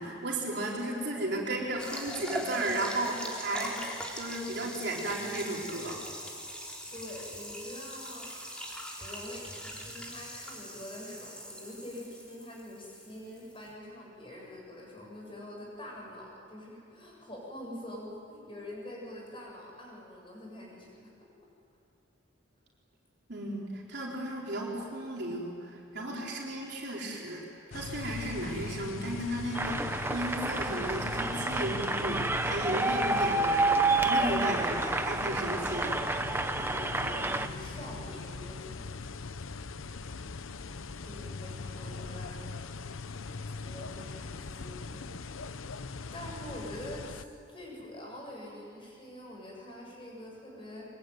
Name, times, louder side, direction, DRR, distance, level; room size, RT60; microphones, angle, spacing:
voice 1, 0.0-3.8 4.1-6.0 23.3-36.0, right 1 dB, 55° right, -3 dB, 4.3 m, -34 dB
sound 1, 1.8-13.7, equal, 5° left, 3.3 m, -42 dB
voice 2, 6.9-8.3 9.0-21.3 26.0-26.2 35.2-35.6 36.6-38.8 41.0-42.9 43.6-50.8, left 1 dB, 25° left, -2 dB, 7.4 m, -45 dB
sound 2, 27.7-47.2, left 4 dB, 90° left, 0.8 m, -41 dB
sound 3, 29.5-37.5, right 2 dB, 10° right, 0.8 m, -29 dB
23.5 x 23.5 x 9.5 m, 2.5 s
head